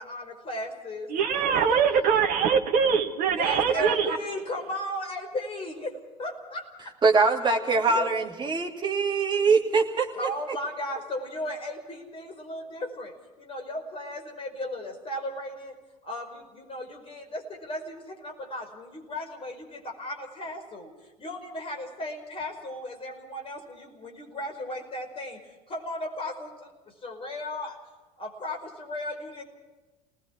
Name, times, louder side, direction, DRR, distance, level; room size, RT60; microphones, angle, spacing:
voice 1, 0.0-1.1 1.7-1.8 3.3-6.9 7.4-8.1 8.4-8.6 10.1-15.8 16.0-20.9 21.2-26.7 27.0-27.8 28.2-29.4, left 1 dB, 25° left, 3 dB, 5.1 m, -36 dB
voice 2, 1.1-4.2, right 6 dB, 45° right, 4 dB, 1.9 m, -23 dB
voice 3, 7.0-10.1, right 4 dB, 20° right, 1 dB, 2.9 m, -23 dB
30.0 x 19.5 x 4.7 m, 1.2 s
figure-of-eight pair, 70°, 20 cm